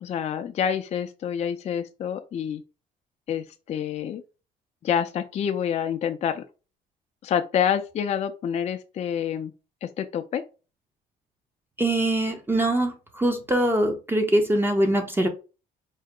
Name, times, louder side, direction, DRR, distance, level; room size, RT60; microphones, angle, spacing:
voice 1, 0.0-2.6 3.3-4.2 4.8-6.4 7.2-9.5 9.8-10.4, left 8 dB, 40° left, 0.4 m, -27 dB
voice 2, 11.8-15.3, right 1 dB, 15° right, 0.7 m, -23 dB
4.6 x 2.1 x 3.6 m
cardioid pair, 110°, 17 cm